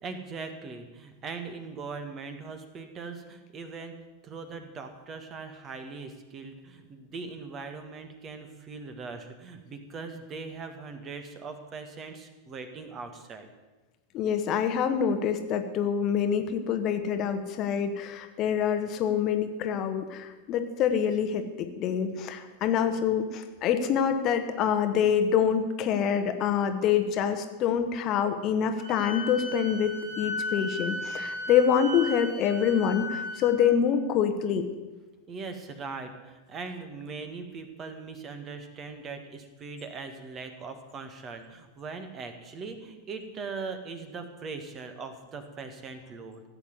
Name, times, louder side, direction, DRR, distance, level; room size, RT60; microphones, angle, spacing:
voice 1, 0.0-3.9 4.2-13.5 30.1-30.2 31.1-31.4 35.3-46.4, right 4 dB, 30° right, 7 dB, 1.8 m, -40 dB
voice 2, 14.1-34.7, left 8 dB, 35° left, 8 dB, 1.2 m, -26 dB
Wind instrument woodwind instrument, 28.8-33.5, left 2 dB, 45° right, 3.3 m, -36 dB
16.0 x 7.9 x 8.1 m, 1.2 s
figure-of-eight pair, 90°, 0 cm